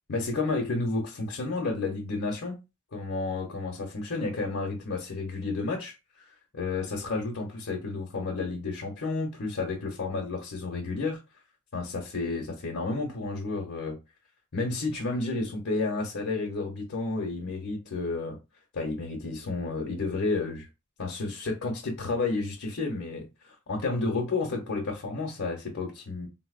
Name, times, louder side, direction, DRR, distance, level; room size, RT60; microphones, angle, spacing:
voice 1, 0.1-2.6 2.9-5.9 6.5-11.2 11.7-14.0 14.5-18.4 18.7-20.7 21.0-26.3, left 3 dB, 55° left, 0.7 m, -31 dB
3.8 x 2.0 x 2.4 m
head